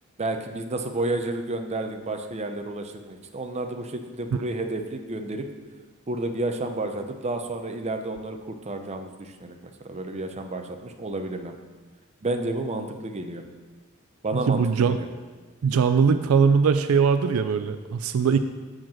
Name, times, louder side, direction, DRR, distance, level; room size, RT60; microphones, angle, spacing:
voice 1, 0.2-5.5 6.1-11.5 12.2-13.4 14.2-15.1, right 2 dB, 30° right, 5 dB, 0.6 m, -31 dB
voice 2, 14.5-15.0 15.6-18.4, right 6 dB, 75° right, 10 dB, 0.4 m, -21 dB
7.4 x 4.9 x 6.2 m, 1.3 s
head